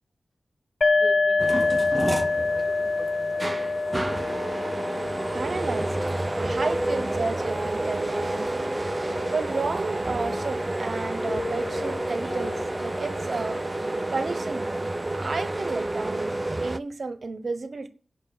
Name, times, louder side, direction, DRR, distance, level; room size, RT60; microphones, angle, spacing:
sound 1, 0.8-8.3, left 3 dB, 50° left, 0.5 m, -27 dB
voice 1, 0.9-3.5, equal, 35° left, 5.7 m, -44 dB
sound 2, 1.4-16.8, right 1 dB, 20° right, 0.5 m, -30 dB
voice 2, 5.3-8.6 9.3-13.6 14.1-14.8 15.1-16.3 16.6-17.9, right 4 dB, 55° right, 1.0 m, -32 dB
Mallet percussion, 6.7-14.9, left 1 dB, 20° left, 4.2 m, -38 dB
16.5 x 6.0 x 6.5 m
wide cardioid pair, 115°, 0 cm